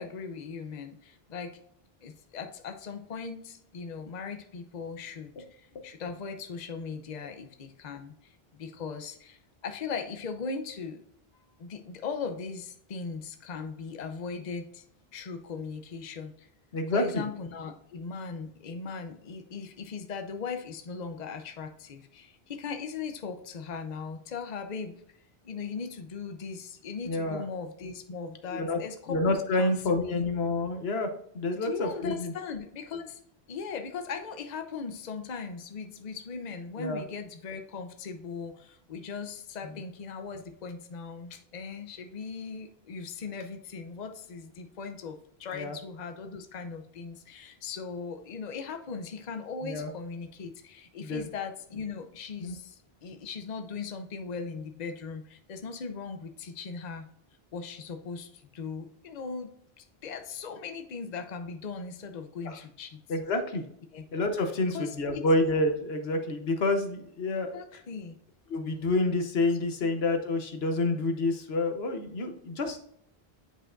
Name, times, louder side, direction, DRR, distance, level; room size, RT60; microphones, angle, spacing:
voice 1, 0.0-1.6 2.0-11.0 11.6-14.8 15.1-16.5 16.9-25.0 25.4-30.3 31.6-33.2 33.5-57.1 57.5-63.0 63.9-64.0 64.7-65.2 67.5-68.2, left 5 dB, 50° left, 7 dB, 0.8 m, -39 dB
voice 2, 16.7-17.2 27.0-27.4 28.5-28.8 29.1-32.3 36.8-37.0 45.5-45.7 49.6-49.9 51.0-51.3 52.4-52.5 62.4-62.6 63.1-63.6 64.1-67.5 68.5-72.8, left 2 dB, 80° left, 6 dB, 1.2 m, -28 dB
8.7 x 5.2 x 2.5 m, 0.68 s
omnidirectional pair, 1.0 m